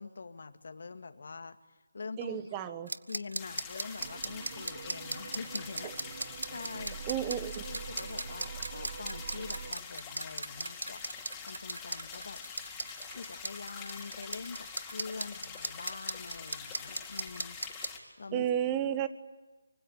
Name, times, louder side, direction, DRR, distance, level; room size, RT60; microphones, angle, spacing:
voice 1, 0.0-1.6 1.9-2.6 3.1-5.9 6.5-7.0 7.6-12.4 13.1-17.6 18.2-18.4, left 4 dB, 60° left, 9 dB, 2.1 m, -44 dB
voice 2, 2.2-2.9 5.8-5.9 7.1-7.6 18.3-19.1, right 10 dB, 15° right, 11 dB, 1.4 m, -32 dB
sound 1, 2.9-17.9, right 2 dB, 85° right, 1.2 m, -37 dB
sound 2, 3.4-18.0, left 6 dB, 10° left, 4.5 m, -45 dB
sound 3, 4.0-9.7, right 6 dB, 45° right, 1.3 m, -45 dB
25.0 x 25.0 x 9.1 m, 1.2 s
figure-of-eight pair, 160°, 0 cm